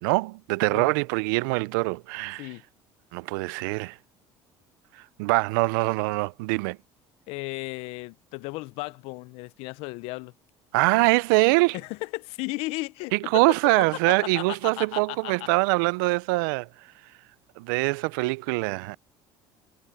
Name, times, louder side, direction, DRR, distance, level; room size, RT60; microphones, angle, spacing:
voice 1, 0.0-2.5 3.1-4.0 5.2-6.8 10.7-11.8 13.1-16.7 17.6-19.0, right 25 dB, 85° right, 0.5 m, -24 dB
voice 2, 7.3-10.3 11.7-13.4 14.1-15.5, left 23 dB, 75° left, 0.6 m, -35 dB
supercardioid pair, 95°, 10 cm